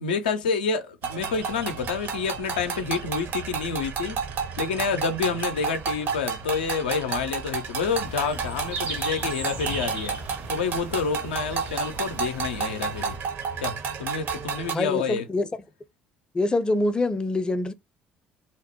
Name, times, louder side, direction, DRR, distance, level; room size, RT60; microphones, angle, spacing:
voice 1, 0.0-4.2 4.6-10.2 10.5-13.2 13.6-15.3, left 5 dB, 85° left, 0.4 m, -28 dB
sound 1, 1.0-14.7, right 5 dB, 55° right, 0.6 m, -31 dB
sound 2, 7.8-13.2, right 2 dB, 75° right, 1.2 m, -37 dB
voice 2, 14.7-15.5 16.3-17.7, left 2 dB, 20° left, 0.4 m, -25 dB
2.8 x 2.0 x 2.8 m
hypercardioid pair, 60°, 4 cm